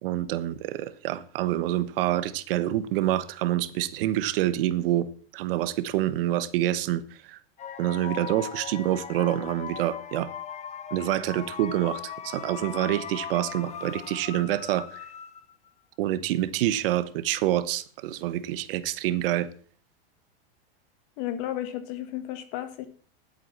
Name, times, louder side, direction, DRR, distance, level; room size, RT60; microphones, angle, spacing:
voice 1, 0.0-7.4 7.8-10.3 10.9-15.1 16.0-19.5, right 13 dB, 70° right, 1.2 m, -27 dB
sound 1, 7.6-15.7, left 8 dB, 25° left, 1.1 m, -39 dB
voice 2, 21.2-22.9, left 12 dB, 55° left, 2.1 m, -33 dB
11.0 x 8.3 x 7.3 m
supercardioid pair, 135°, 30 cm